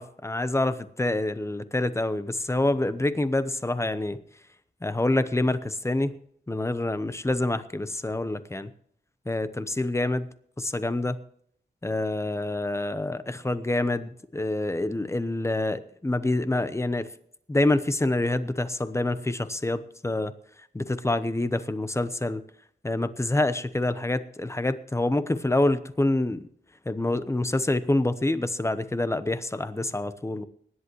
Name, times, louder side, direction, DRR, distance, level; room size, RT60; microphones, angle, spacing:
voice 1, 0.0-4.2 4.8-6.1 6.5-8.7 9.3-10.3 10.6-11.2 11.8-17.1 17.5-20.3 20.7-22.4 22.8-26.4 26.9-30.5, left 2 dB, 15° left, 12 dB, 0.9 m, -26 dB
24.5 x 11.0 x 3.2 m, 0.66 s
wide cardioid pair, 130°, 18 cm